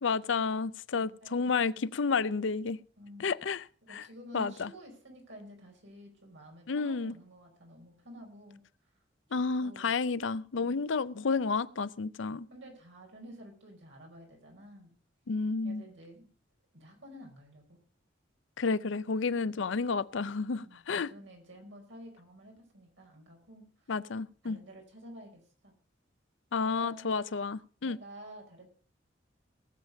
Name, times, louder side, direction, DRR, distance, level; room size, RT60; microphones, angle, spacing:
voice 1, 0.0-2.8 3.2-3.6 3.9-4.0 4.3-4.7 6.7-7.1 9.3-12.5 15.3-15.8 18.6-21.1 23.9-24.6 26.5-28.0, left 4 dB, 80° left, 0.5 m, -31 dB
voice 2, 1.0-1.5 3.0-3.3 3.8-8.6 9.3-10.0 10.5-10.8 12.2-14.9 15.6-16.3 16.7-17.8 19.5-19.7 20.5-23.9 24.4-25.7 26.6-27.2 27.8-28.7, equal, 75° right, 5.1 m, -51 dB
19.0 x 7.4 x 5.1 m
head